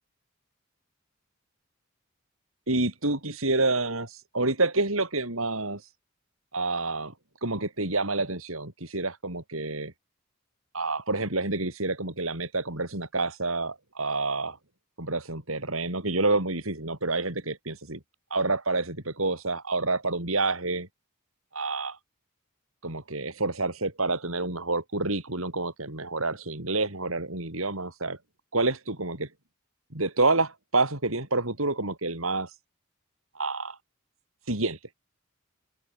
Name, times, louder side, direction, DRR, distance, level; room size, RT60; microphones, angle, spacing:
voice 1, 2.7-5.9 6.5-7.1 7.4-9.9 10.7-14.6 15.0-18.0 18.3-20.9 21.5-22.0 22.8-28.2 28.5-29.3 29.9-32.6 33.3-33.8 34.5-34.8, right 3 dB, 75° right, 5.5 m, -28 dB
head